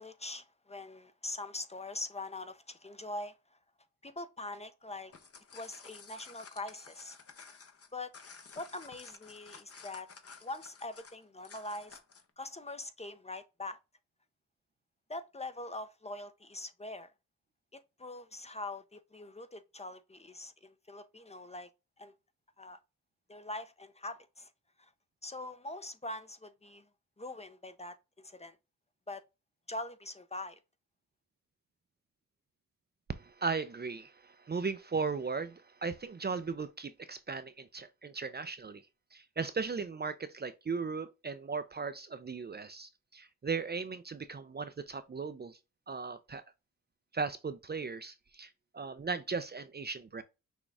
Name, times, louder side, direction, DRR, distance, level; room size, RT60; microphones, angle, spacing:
voice 1, 0.0-3.6 4.0-5.1 5.5-7.6 7.9-8.1 8.5-10.1 10.4-12.0 12.4-13.8 15.1-17.1 17.7-21.7 22.0-22.1 22.6-22.8 23.3-24.5 24.8-24.9 25.2-26.9 27.2-28.6 29.1-29.2 29.7-30.6, left 2 dB, 20° left, 0.8 m, -43 dB
sound 1, 5.0-12.3, left 5 dB, 45° left, 1.1 m, -53 dB
voice 2, 33.1-38.8 39.1-45.6 45.9-46.4 47.1-50.2, right 4 dB, 30° right, 0.6 m, -37 dB
6.2 x 2.3 x 3.4 m
cardioid pair, 55°, 34 cm